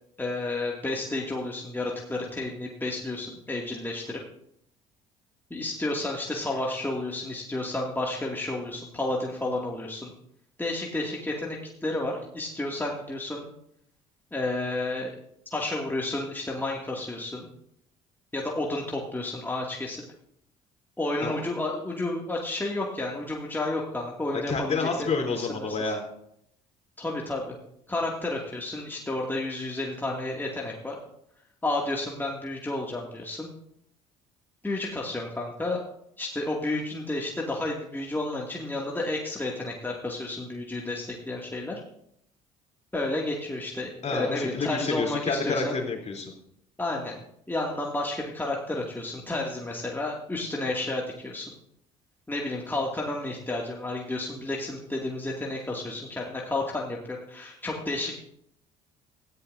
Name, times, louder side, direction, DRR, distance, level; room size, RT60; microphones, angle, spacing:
voice 1, 0.2-4.2 5.5-10.1 10.6-13.5 14.3-15.1 15.5-17.5 18.3-20.0 21.0-25.9 27.0-27.6 27.9-31.0 31.6-33.5 34.6-35.8 36.2-41.8 42.9-45.8 46.8-47.2 47.5-51.5 52.3-58.1, left 2 dB, 10° left, -2 dB, 2.5 m, -31 dB
voice 2, 24.3-26.0 44.0-46.3, left 4 dB, 35° left, 1 dB, 3.7 m, -29 dB
19.0 x 14.5 x 2.7 m, 0.74 s
hypercardioid pair, 55°, 19 cm